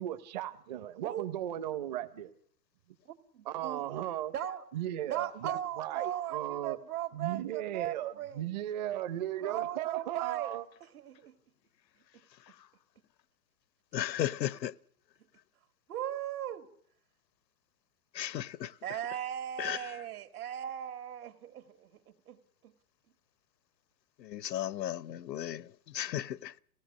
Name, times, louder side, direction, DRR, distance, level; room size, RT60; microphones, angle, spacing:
voice 1, 0.0-2.3 3.4-4.3 4.7-6.8 7.1-10.6, right 12 dB, 25° right, 0.8 m, -36 dB
voice 2, 3.3-3.8 4.3-4.6 5.0-8.5 9.4-10.5 10.8-11.3 15.9-16.7 18.8-22.7, right 11 dB, 60° right, 2.0 m, -38 dB
voice 3, 13.9-14.7 18.1-18.8 19.6-19.9 24.2-26.6, left 12 dB, 80° left, 0.9 m, -35 dB
26.5 x 17.5 x 6.5 m
hypercardioid pair, 160°, 49 cm